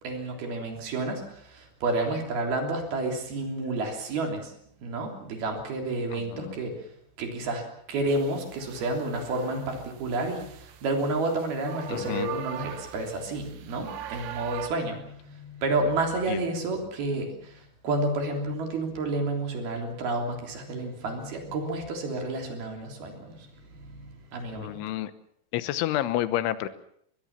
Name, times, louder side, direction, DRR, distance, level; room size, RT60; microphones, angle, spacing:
voice 1, 0.0-4.5 4.8-6.9 7.2-24.9, right 2 dB, 55° right, 3 dB, 5.1 m, -30 dB
voice 2, 6.1-6.6 11.9-12.3 16.3-16.4 24.6-25.1 25.5-26.7, left 13 dB, 85° left, 14 dB, 3.5 m, -29 dB
sound 1, 8.1-14.7, right 10 dB, 80° right, 3.9 m, -42 dB
21.5 x 21.5 x 7.3 m, 0.69 s
omnidirectional pair, 5.3 m